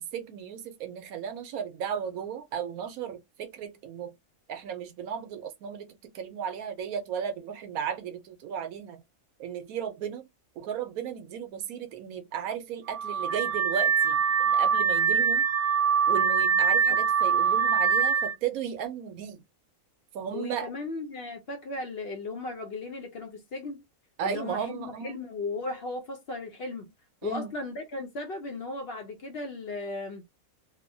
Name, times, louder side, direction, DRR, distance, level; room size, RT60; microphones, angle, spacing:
voice 1, 0.0-4.1 4.5-9.0 9.4-10.3 10.6-15.5 16.1-19.4 20.1-20.7 24.2-25.2 27.2-27.6, right 8 dB, 85° right, 1.1 m, -35 dB
Car / Alarm, 12.9-18.3, right 6 dB, 50° right, 1.0 m, -24 dB
voice 2, 20.3-23.8 24.2-26.9 27.2-30.2, left 2 dB, 55° left, 0.7 m, -36 dB
2.9 x 2.1 x 2.5 m
omnidirectional pair, 1.5 m